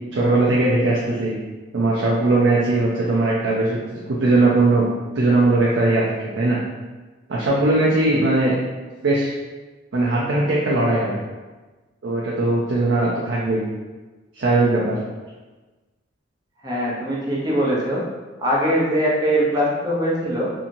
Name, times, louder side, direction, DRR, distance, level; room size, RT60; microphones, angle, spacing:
voice 1, 0.1-1.4 1.7-4.9 5.1-6.6 7.3-8.5 9.0-9.3 9.9-11.2 12.0-13.6 14.3-15.0, right 2 dB, 70° right, -5 dB, 0.5 m, -19 dB
voice 2, 16.6-18.0 18.4-20.5, equal, 20° right, -5 dB, 0.6 m, -21 dB
2.7 x 2.7 x 2.5 m, 1.2 s
head